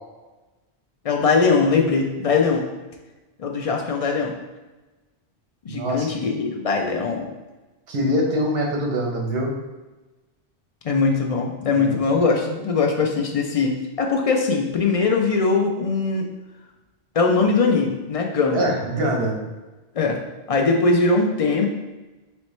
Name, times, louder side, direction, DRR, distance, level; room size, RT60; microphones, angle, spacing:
voice 1, 1.0-2.7 3.4-4.3 5.6-7.3 10.8-16.3 17.2-18.7 19.9-20.2 20.5-21.7, left 4 dB, 50° left, 1 dB, 0.4 m, -21 dB
voice 2, 5.7-6.1 7.9-9.5 11.7-12.0 18.5-19.4, equal, 70° right, 0 dB, 1.1 m, -23 dB
4.1 x 3.1 x 3.1 m, 1.1 s
omnidirectional pair, 1.1 m